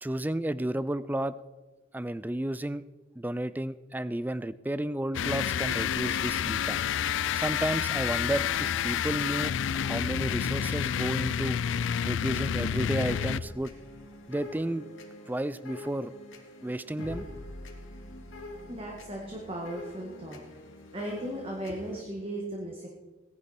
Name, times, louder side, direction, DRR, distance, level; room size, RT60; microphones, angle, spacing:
voice 1, 0.0-1.4 1.9-2.8 3.2-6.8 7.4-11.6 12.0-13.7 14.3-14.9 15.3-16.1 16.6-17.2, right 1 dB, 10° right, 15 dB, 0.3 m, -32 dB
sound 1, 5.1-13.7, left 8 dB, 70° left, 0.3 m, -29 dB
sound 2, 12.3-22.0, left 1 dB, 90° left, 2.2 m, -45 dB
voice 2, 18.7-20.4 20.9-22.9, right 1 dB, 30° right, -1 dB, 1.8 m, -36 dB
18.5 x 11.0 x 4.4 m, 1.2 s
head